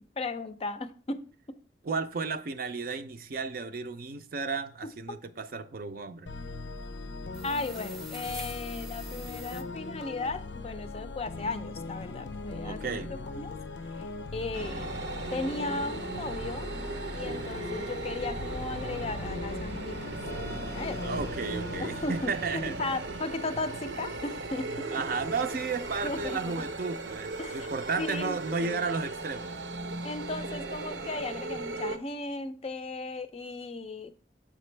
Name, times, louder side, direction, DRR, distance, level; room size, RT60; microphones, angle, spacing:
voice 1, 0.2-1.2 5.1-5.2 7.4-13.0 13.3-13.5 14.0-14.1 14.3-14.9 15.1-16.7 17.1-20.2 20.5-21.0 21.8-24.9 26.0-26.6 27.4-27.7 28.0-28.8 30.0-34.1, left 3 dB, 35° left, 0.4 m, -36 dB
voice 2, 1.8-6.3 12.6-13.2 21.0-22.9 24.9-29.6, right 4 dB, 55° right, 0.5 m, -33 dB
sound 1, 6.3-22.3, left 3 dB, 85° left, 0.5 m, -40 dB
sound 2, 7.3-9.6, equal, ahead, 0.7 m, -45 dB
sound 3, 14.5-32.0, right 2 dB, 85° right, 0.8 m, -37 dB
7.5 x 5.1 x 3.2 m
head